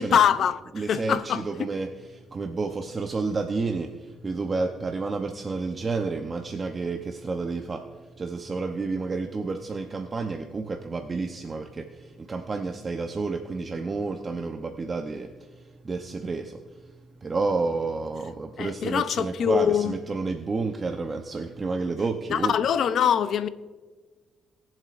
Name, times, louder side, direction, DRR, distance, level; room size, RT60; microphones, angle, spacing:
voice 1, 0.0-0.6 0.9-1.4 18.6-19.9 22.3-23.5, left 8 dB, 65° left, 0.6 m, -23 dB
voice 2, 0.7-16.9 17.2-22.5, right 3 dB, 35° right, 0.7 m, -30 dB
20.5 x 7.4 x 2.5 m
cardioid pair, 90°, 0 cm